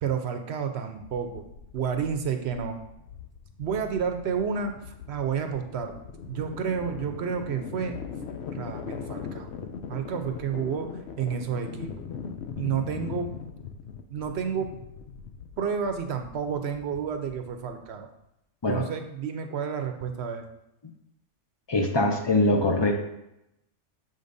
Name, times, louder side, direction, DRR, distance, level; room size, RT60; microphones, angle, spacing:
voice 1, 0.0-1.5 1.7-2.8 3.6-4.7 5.1-5.9 6.3-7.9 8.5-9.5 9.9-10.9 11.2-11.9 12.6-13.3 14.1-14.7 15.6-18.1 18.7-20.5, right 7 dB, 65° right, 6 dB, 0.8 m, -30 dB
sound 1, 1.0-18.0, left 6 dB, 65° left, 0.8 m, -40 dB
voice 2, 21.7-22.9, left 2 dB, 30° left, 2 dB, 0.5 m, -23 dB
7.0 x 5.2 x 2.6 m, 0.84 s
omnidirectional pair, 1.3 m